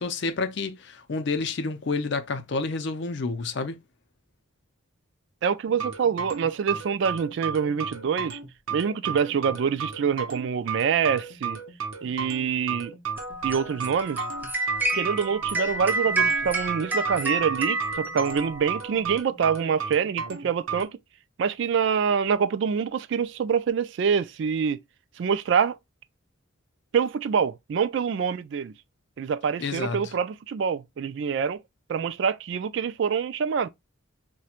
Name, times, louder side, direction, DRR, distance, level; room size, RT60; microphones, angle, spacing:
voice 1, 0.0-3.8 29.6-30.0, left 3 dB, 55° left, 0.5 m, -29 dB
voice 2, 5.4-8.4 8.7-11.6 12.0-12.9 13.4-14.2 14.9-21.0 21.4-24.8 25.2-25.8 26.9-28.7 29.2-31.6 31.9-33.7, right 6 dB, 55° right, 0.3 m, -26 dB
sound 1, 5.6-20.8, right 6 dB, 75° right, 0.7 m, -34 dB
sound 2, 13.2-19.0, right 2 dB, 10° right, 0.5 m, -29 dB
4.3 x 2.2 x 2.4 m
head